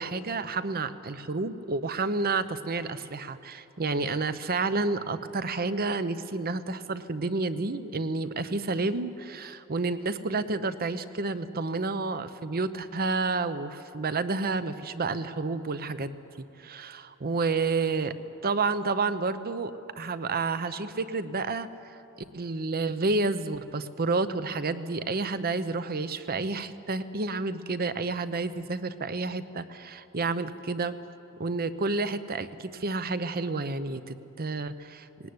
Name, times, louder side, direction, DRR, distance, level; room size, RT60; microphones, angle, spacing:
voice 1, 0.0-18.1 18.4-22.0 22.3-31.0 31.4-35.1, right 3 dB, 45° right, 12 dB, 0.8 m, -30 dB
19.0 x 18.5 x 9.6 m, 2.8 s
head